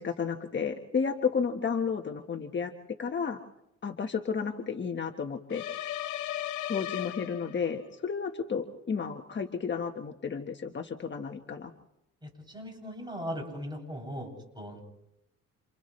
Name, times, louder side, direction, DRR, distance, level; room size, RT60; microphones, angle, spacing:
voice 1, 0.0-2.7 3.0-3.4 3.8-5.6 6.7-11.7, left 6 dB, 40° left, 4 dB, 1.4 m, -32 dB
sound 1, 5.5-7.9, left 13 dB, 75° left, 0.8 m, -36 dB
voice 2, 12.2-14.8, equal, 15° right, 1 dB, 7.9 m, -39 dB
29.0 x 29.0 x 3.3 m, 0.87 s
cardioid pair, 90°, 30 cm